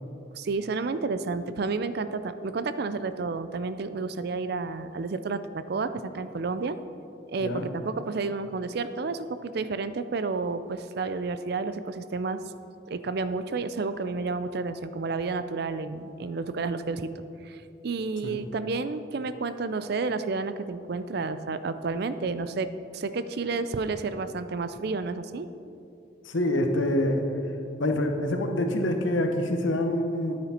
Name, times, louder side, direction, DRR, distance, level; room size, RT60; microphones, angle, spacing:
voice 1, 0.3-6.8 7.3-12.4 12.9-17.1 17.4-25.5, right 4 dB, 55° right, 12 dB, 0.4 m, -31 dB
voice 2, 26.3-27.2 27.8-30.4, left 1 dB, 85° left, 5 dB, 1.0 m, -26 dB
9.6 x 9.3 x 4.4 m, 2.7 s
head